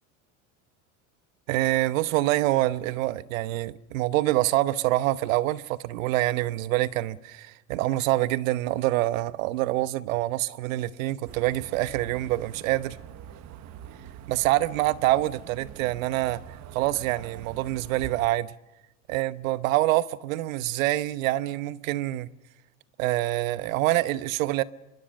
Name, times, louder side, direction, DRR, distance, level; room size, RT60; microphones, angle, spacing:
voice 1, 1.5-13.0 14.3-16.4 16.7-18.5 19.1-22.3 23.0-24.6, right 16 dB, 80° right, 1.0 m, -26 dB
sound 1, 11.3-18.3, right 10 dB, 45° right, 1.3 m, -44 dB
24.5 x 22.5 x 6.6 m
supercardioid pair, 125°, 39 cm